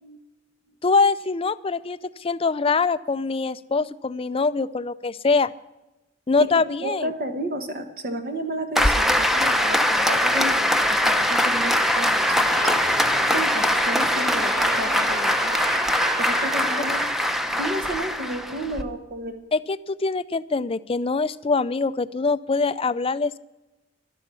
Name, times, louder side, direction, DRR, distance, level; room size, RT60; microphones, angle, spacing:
voice 1, 0.8-5.5 6.3-7.1 19.5-23.4, left 4 dB, 30° left, 15 dB, 0.5 m, -23 dB
voice 2, 6.5-12.8 13.3-15.6 16.2-17.0 17.6-19.4, right 1 dB, 50° right, 6 dB, 1.3 m, -32 dB
Applause, 8.8-18.8, equal, ahead, 0.8 m, -22 dB
Laughter, 12.2-17.0, right 2 dB, 25° right, 4.6 m, -34 dB
12.5 x 12.5 x 6.9 m, 1.0 s
head